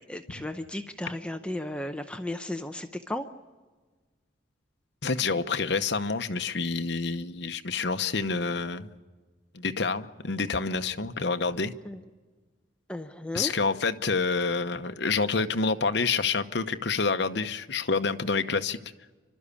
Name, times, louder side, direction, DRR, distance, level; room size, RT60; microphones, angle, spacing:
voice 1, 0.0-3.3 11.8-12.0 12.9-13.5, left 1 dB, 5° left, 6 dB, 0.6 m, -34 dB
voice 2, 5.0-8.9 9.5-11.7 13.3-18.8, left 4 dB, 60° left, 8 dB, 0.9 m, -28 dB
29.0 x 12.5 x 8.4 m, 1.4 s
head